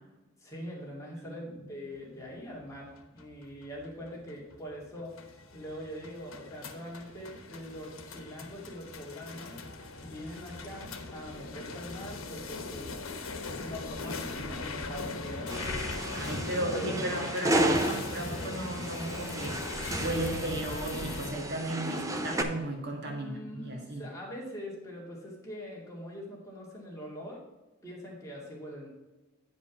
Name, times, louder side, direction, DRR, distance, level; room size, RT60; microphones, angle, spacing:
voice 1, 0.4-5.1 5.5-9.6 10.0-12.9 13.6-15.7 16.7-17.1 23.0-27.4 27.8-28.9, equal, 15° left, -4 dB, 2.4 m, -43 dB
sound 1, 2.7-21.3, left 3 dB, 80° left, 1.1 m, -39 dB
sound 2, 15.5-22.4, right 1 dB, 15° right, 0.7 m, -33 dB
voice 2, 16.1-19.6 20.0-24.0, right 1 dB, 55° right, 1 dB, 1.8 m, -35 dB
9.6 x 5.2 x 5.9 m, 1.1 s
head